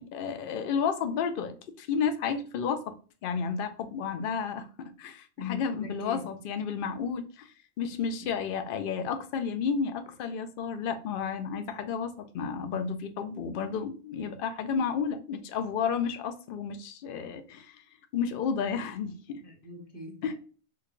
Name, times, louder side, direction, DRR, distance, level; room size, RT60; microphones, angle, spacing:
voice 1, 0.0-2.9 3.2-17.8 18.1-19.4 20.2-20.3, left 6 dB, 65° left, 0.5 m, -32 dB
voice 2, 5.4-6.3 8.2-8.3 19.4-20.3, left 7 dB, 20° left, 1.0 m, -41 dB
3.1 x 2.2 x 3.6 m
omnidirectional pair, 1.4 m